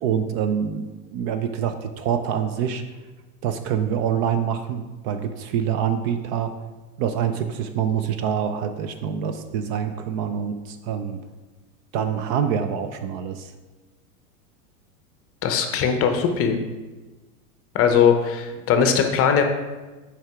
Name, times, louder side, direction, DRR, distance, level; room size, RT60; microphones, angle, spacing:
voice 1, 0.0-2.8 3.4-6.5 7.0-11.2 11.9-13.5, right 8 dB, 45° right, 8 dB, 0.5 m, -26 dB
voice 2, 15.4-16.6 17.7-19.4, left 7 dB, 30° left, 6 dB, 0.7 m, -20 dB
6.3 x 4.9 x 3.5 m, 1.2 s
hypercardioid pair, 115°, 45 cm